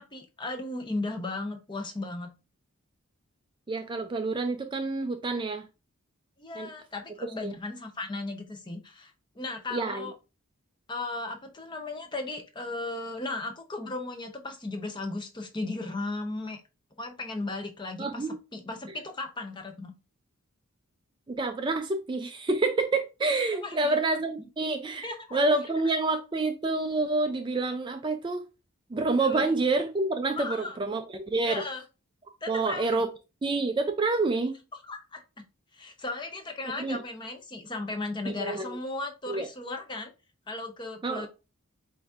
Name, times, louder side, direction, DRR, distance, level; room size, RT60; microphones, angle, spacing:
voice 1, 0.0-2.3 6.4-10.1 10.9-16.6 17.0-19.9 23.6-24.0 24.4-24.5 25.0-25.4 29.2-29.5 30.4-30.8 31.5-31.8 32.4-33.0 34.8-35.2 35.7-40.1 40.5-41.3, left 2 dB, 20° left, 0.7 m, -36 dB
voice 2, 3.7-5.6 6.6-6.7 7.4-7.5 9.7-10.1 18.0-18.4 21.3-28.4 28.9-31.6 32.5-33.1 33.4-34.6 36.8-37.0 38.3-38.8 39.3-39.5 41.0-41.3, right 3 dB, 20° right, 0.3 m, -28 dB
7.8 x 2.7 x 2.4 m
head